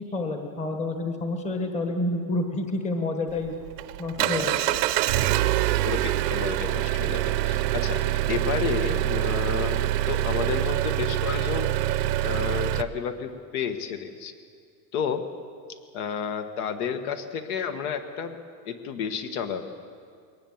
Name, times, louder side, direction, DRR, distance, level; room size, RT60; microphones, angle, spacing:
voice 1, 0.0-3.5 4.0-4.6, left 2 dB, 15° left, 5 dB, 1.3 m, -29 dB
Engine, 3.3-12.8, right 14 dB, 75° right, 0.9 m, -25 dB
voice 2, 4.2-4.7 5.3-5.4 5.8-9.8 10.1-14.3 14.9-15.3 15.9-19.7, left 7 dB, 60° left, 8 dB, 1.7 m, -31 dB
22.0 x 19.0 x 7.3 m, 2.2 s
supercardioid pair, 155°, 49 cm